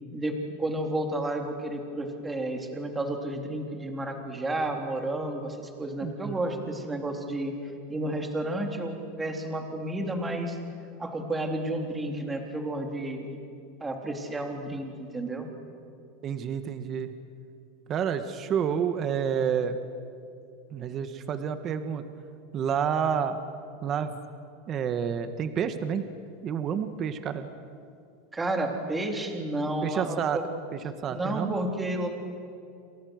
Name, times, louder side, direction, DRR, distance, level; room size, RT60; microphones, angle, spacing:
voice 1, 0.1-7.5 7.9-10.6 11.0-13.4 13.8-15.5 28.3-30.4 31.1-32.1, right 1 dB, 10° right, 3 dB, 3.4 m, -31 dB
voice 2, 6.0-6.4 16.2-17.1 17.9-19.8 20.7-22.0 22.5-23.4 23.8-24.1 24.7-26.1 26.4-27.5 29.8-30.4 30.7-31.5, right 7 dB, 30° right, 9 dB, 1.5 m, -29 dB
29.0 x 27.0 x 6.6 m, 2.5 s
supercardioid pair, 145°, 0 cm